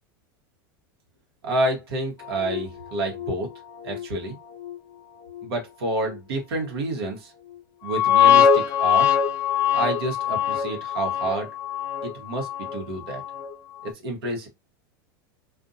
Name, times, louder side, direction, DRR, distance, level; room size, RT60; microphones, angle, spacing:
voice 1, 1.4-3.5 3.8-4.4 5.4-7.3 7.8-9.1 9.7-11.5 12.0-13.2 13.8-14.5, right 2 dB, 85° right, 1.0 m, -29 dB
sound 1, 2.2-3.4 3.8-4.1 4.6-4.8 5.3-5.5 6.1-6.2 7.9-13.5 13.8-13.9, left 8 dB, 30° left, 0.4 m, -23 dB
2.5 x 2.1 x 2.5 m
supercardioid pair, 130°, 12 cm